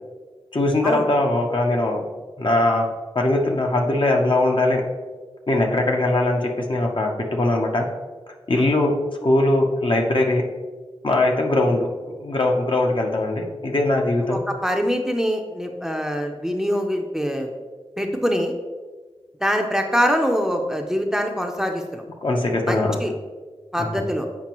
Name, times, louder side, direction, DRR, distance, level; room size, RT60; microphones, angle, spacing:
voice 1, 0.5-2.1 2.4-2.9 3.1-4.8 5.5-7.9 8.5-8.9 9.2-10.4 11.0-11.9 12.2-14.4 22.2-23.0 23.8-24.0, left 2 dB, 50° left, 1 dB, 0.8 m, -21 dB
voice 2, 14.3-17.5 18.0-18.5 19.4-22.0 22.6-23.1 23.7-24.3, equal, 5° right, 3 dB, 0.6 m, -24 dB
7.3 x 5.1 x 3.0 m, 1.4 s
wide cardioid pair, 85°, 11 cm